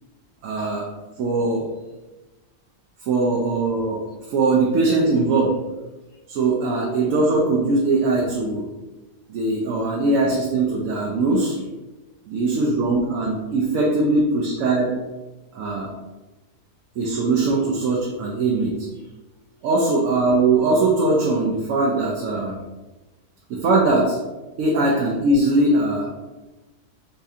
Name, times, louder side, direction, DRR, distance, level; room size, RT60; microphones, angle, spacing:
voice 1, 0.4-0.9 1.2-1.6 3.0-5.6 6.3-8.7 9.3-11.6 12.3-15.0 15.5-15.9 17.0-18.9 19.6-22.6 23.5-24.2 24.6-26.1, right 2 dB, 75° right, -2 dB, 1.0 m, -21 dB
4.1 x 2.7 x 2.4 m, 1.1 s
omnidirectional pair, 1.4 m